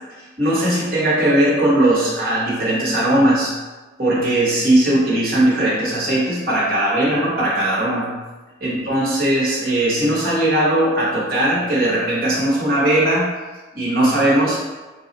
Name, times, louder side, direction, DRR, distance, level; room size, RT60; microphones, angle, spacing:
voice 1, 0.4-3.5 4.0-8.1 8.6-13.3 13.7-14.6, right 1 dB, 50° right, -5 dB, 1.1 m, -18 dB
3.6 x 2.4 x 3.9 m, 1.2 s
head